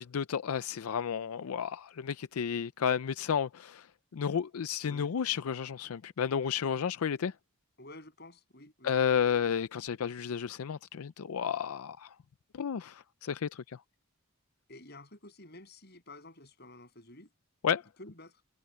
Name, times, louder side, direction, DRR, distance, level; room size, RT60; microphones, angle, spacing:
voice 1, 0.0-3.9 4.1-7.3 8.8-12.1 12.5-13.8 17.6-17.8, left 7 dB, 90° left, 0.5 m, -32 dB
voice 2, 4.8-5.1 7.8-9.0 14.7-17.3 18.0-18.4, left 2 dB, 50° left, 8.0 m, -51 dB
head